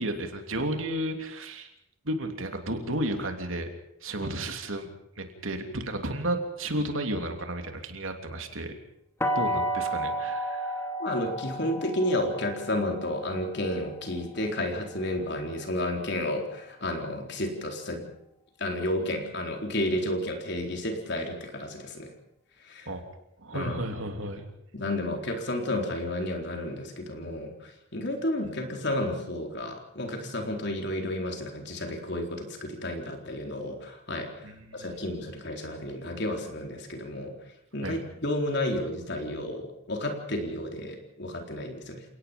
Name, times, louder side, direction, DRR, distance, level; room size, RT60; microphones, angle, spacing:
voice 1, 0.0-1.7 2.0-3.7 4.0-4.9 5.2-8.8 9.3-10.9 22.9-23.0 23.4-24.5 34.4-34.9 37.8-38.0, right 1 dB, 70° right, 5 dB, 3.2 m, -33 dB
sound 1, 9.2-15.0, equal, 10° left, 2.7 m, -32 dB
voice 2, 11.0-18.0 18.6-22.1 22.6-22.9 23.5-23.8 24.7-37.4 37.7-42.0, left 1 dB, 50° left, 3 dB, 4.2 m, -31 dB
29.5 x 18.0 x 5.4 m, 0.79 s
head